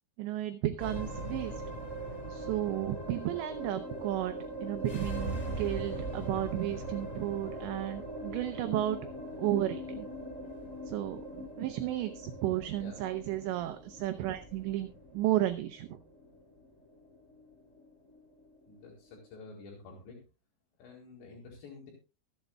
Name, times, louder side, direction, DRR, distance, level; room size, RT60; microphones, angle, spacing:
voice 1, 0.2-1.5 2.3-9.0 9.4-10.1 10.9-16.0, right 14 dB, 80° right, 9 dB, 2.6 m, -33 dB
sound 1, 0.8-19.3, right 1 dB, 15° left, 4.2 m, -41 dB
voice 2, 18.7-20.2 20.8-21.9, left 3 dB, 65° left, -1 dB, 4.0 m, -49 dB
23.5 x 8.0 x 2.2 m, 0.30 s
omnidirectional pair, 5.7 m